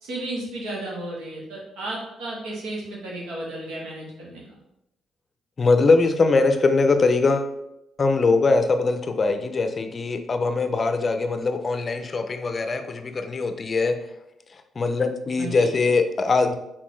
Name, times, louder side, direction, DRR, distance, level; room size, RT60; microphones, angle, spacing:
voice 1, 0.0-4.6 15.4-15.7, right 1 dB, 90° right, -4 dB, 1.5 m, -33 dB
voice 2, 5.6-7.5 8.0-14.0 14.8-16.5, left 3 dB, 35° left, 8 dB, 0.5 m, -21 dB
4.2 x 3.7 x 3.1 m, 0.85 s
cardioid pair, 90°, 0 cm